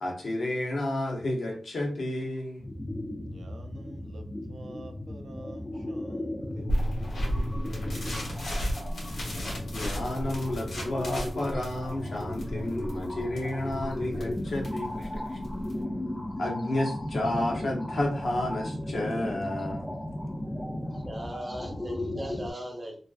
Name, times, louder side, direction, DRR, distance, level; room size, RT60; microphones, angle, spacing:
voice 1, 0.0-2.7 9.7-15.4 16.4-20.0, left 1 dB, 60° left, 0 dB, 0.6 m, -31 dB
sound 1, 2.6-22.5, left 1 dB, 15° left, 0.3 m, -35 dB
voice 2, 3.2-8.2 8.5-9.1, right 2 dB, 80° right, 4 dB, 0.4 m, -49 dB
sound 2, 6.7-15.8, equal, 85° left, 1.1 m, -34 dB
voice 3, 20.9-23.0, right 1 dB, 30° right, 0 dB, 0.7 m, -39 dB
2.4 x 2.2 x 2.3 m, 0.43 s
wide cardioid pair, 120°, 0 cm